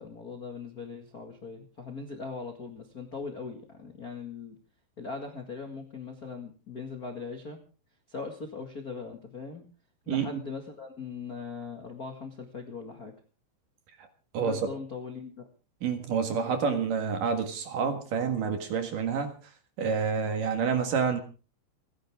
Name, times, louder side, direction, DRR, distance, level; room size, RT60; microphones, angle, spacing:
voice 1, 0.0-4.5 5.0-7.6 8.1-9.6 10.0-13.1 14.4-15.4 16.6-16.9, left 4 dB, 80° left, 3 dB, 0.8 m, -40 dB
voice 2, 10.1-10.4 14.3-14.6 15.8-19.3 19.8-21.2, right 6 dB, 55° right, 7 dB, 2.8 m, -28 dB
29.5 x 10.5 x 3.6 m, 0.35 s
omnidirectional pair, 5.3 m